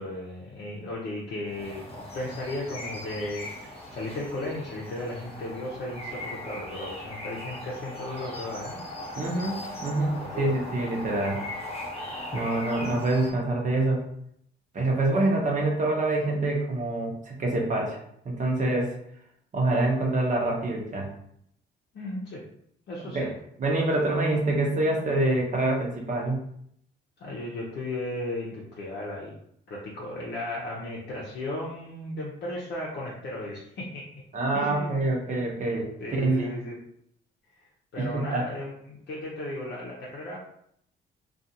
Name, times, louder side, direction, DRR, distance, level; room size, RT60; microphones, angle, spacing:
voice 1, 0.0-1.9 2.1-3.5 3.9-8.8 10.1-10.6 12.3-12.4 21.9-22.4 22.9-23.3 27.2-29.3 29.7-34.0 34.5-35.0 36.0-36.8 37.9-40.4, left 1 dB, 60° left, -5 dB, 0.7 m, -35 dB
sound 1, 1.5-13.3, left 1 dB, 30° left, 0.9 m, -39 dB
voice 2, 9.2-11.4 12.3-14.0 14.7-18.0 18.2-18.9 19.5-21.1 23.1-23.3 23.6-26.4 34.3-36.5 38.0-38.5, right 2 dB, 40° right, -1 dB, 0.8 m, -26 dB
2.4 x 2.4 x 2.7 m, 0.70 s
cardioid pair, 90°, 20 cm